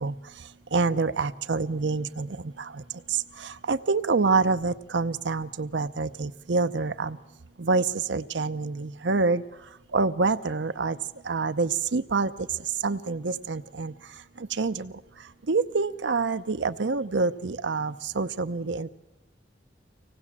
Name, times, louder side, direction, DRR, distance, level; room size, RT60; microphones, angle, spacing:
voice 1, 0.7-2.3 3.7-7.2 7.6-9.4 9.9-11.0 11.3-12.3 12.8-13.9 14.6-14.9 15.5-18.9, right 4 dB, 85° right, 11 dB, 0.7 m, -26 dB
24.5 x 18.0 x 7.3 m, 0.95 s
head